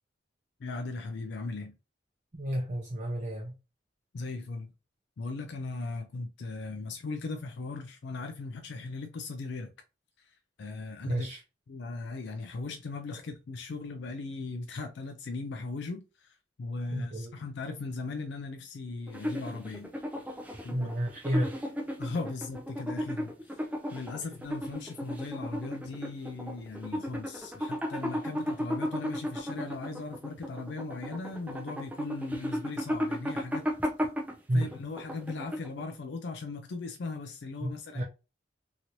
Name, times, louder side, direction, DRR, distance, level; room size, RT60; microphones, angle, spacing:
voice 1, 0.6-1.7 4.1-4.7 5.2-9.7 10.2-11.3 11.7-19.9 20.6-20.9 22.0-23.3 23.9-33.7 34.5-38.0, left 3 dB, 70° left, 0.4 m, -38 dB
voice 2, 2.3-3.5 11.1-11.4 16.9-17.3 20.7-21.6 34.5-34.7 37.6-38.0, right 1 dB, 40° right, 0.7 m, -31 dB
sound 1, 19.1-35.9, equal, 10° right, 0.5 m, -35 dB
2.9 x 2.9 x 2.5 m
head